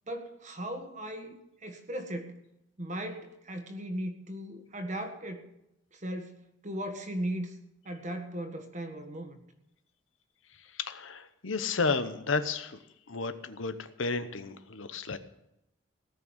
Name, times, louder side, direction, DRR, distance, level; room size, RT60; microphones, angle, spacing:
voice 1, 0.1-1.4 1.6-2.4 2.8-5.4 5.9-7.6 7.8-9.3, right 1 dB, 40° right, 6 dB, 1.6 m, -37 dB
voice 2, 10.5-12.8 13.1-15.2, left 4 dB, 80° left, 11 dB, 0.9 m, -32 dB
18.0 x 6.3 x 8.8 m, 0.85 s
head